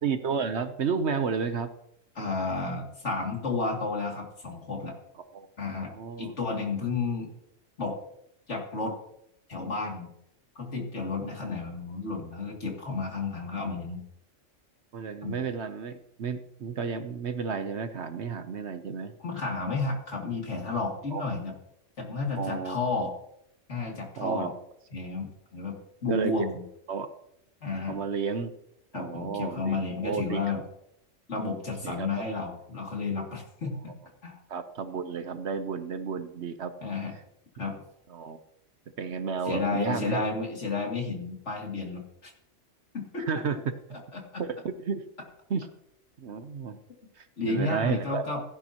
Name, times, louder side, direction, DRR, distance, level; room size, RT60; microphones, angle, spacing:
voice 1, 0.0-1.7 5.3-5.5 5.8-6.3 14.9-19.1 21.1-21.3 22.3-22.8 24.2-24.5 26.1-26.5 26.9-27.1 27.9-28.5 28.9-29.8 30.0-30.4 31.8-32.1 34.5-36.7 38.1-38.4 39.0-40.2 43.3-43.6 44.4-44.6 44.8-45.0 45.5-45.7 46.2-46.8 47.2-48.4, right 6 dB, 60° right, 10 dB, 1.0 m, -32 dB
voice 2, 2.2-5.0 5.6-7.3 7.8-8.0 8.5-8.9 9.5-10.1 10.6-14.0 15.2-15.4 19.2-21.5 22.0-23.1 23.7-24.5 24.9-26.6 27.6-28.0 28.9-30.6 31.3-33.9 34.2-34.4 36.8-37.1 37.6-37.8 39.4-42.3 42.9-43.2 43.9-44.2 47.4-48.4, left 3 dB, 60° left, 0 dB, 2.8 m, -32 dB
16.0 x 10.5 x 2.9 m, 0.75 s
omnidirectional pair, 1.3 m